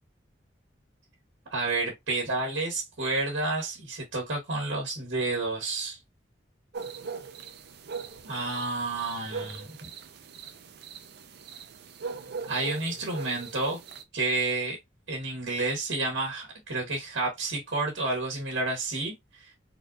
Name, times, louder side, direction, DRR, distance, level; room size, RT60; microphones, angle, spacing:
voice 1, 1.5-6.0 8.2-9.7 12.5-13.8 14.1-14.8 15.1-19.1 19.4-19.5, right 2 dB, 80° right, 1.5 m, -30 dB
sound 1, 6.7-14.0, right 5 dB, 60° right, 0.5 m, -40 dB
3.9 x 2.6 x 2.5 m
head